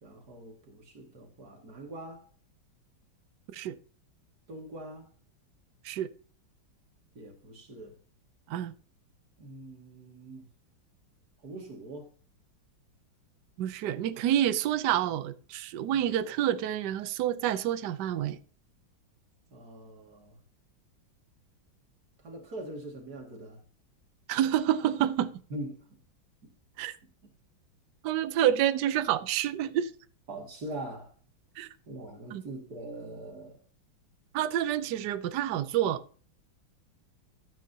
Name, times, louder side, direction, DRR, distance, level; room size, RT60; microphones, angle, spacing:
voice 1, 0.0-2.3 4.5-5.1 7.1-7.9 9.4-10.4 11.4-12.1 15.9-16.1 19.5-20.4 22.2-23.6 25.5-26.0 26.4-26.5 30.3-31.1 31.9-33.6, right 1 dB, 50° right, 2.7 m, -42 dB
voice 2, 13.6-18.4 24.3-25.3 26.8-27.0 28.0-29.9 31.6-31.7 32.3-32.4 34.3-36.0, right 11 dB, 65° right, 1.2 m, -28 dB
12.5 x 9.1 x 2.9 m
omnidirectional pair, 2.2 m